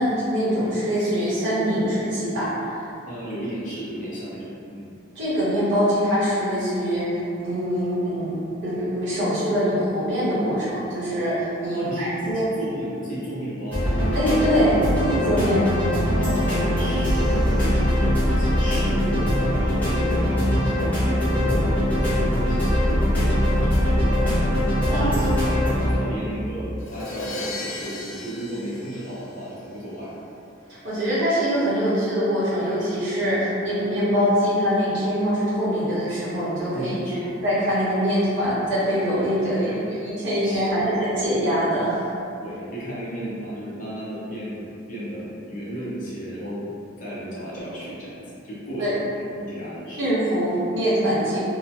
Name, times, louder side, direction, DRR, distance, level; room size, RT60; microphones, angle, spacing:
voice 1, 0.0-2.9 5.1-8.3 8.6-12.4 14.1-15.6 24.9-25.2 30.8-37.0 37.4-39.7 40.0-42.0 48.8-48.9 50.0-51.5, equal, 70° right, -11 dB, 1.1 m, -23 dB
voice 2, 3.1-4.9 11.7-13.9 15.4-19.3 19.6-24.3 24.8-30.1 36.7-37.3 39.6-39.9 40.4-41.0 42.4-46.7 47.0-49.1 49.4-50.1, right 1 dB, 40° left, -9 dB, 0.7 m, -33 dB
sound 1, 13.7-26.0, equal, 10° left, 0.7 m, -21 dB
Crash cymbal, 26.8-29.7, left 2 dB, 70° left, 0.3 m, -36 dB
2.8 x 2.3 x 2.7 m, 2.6 s
head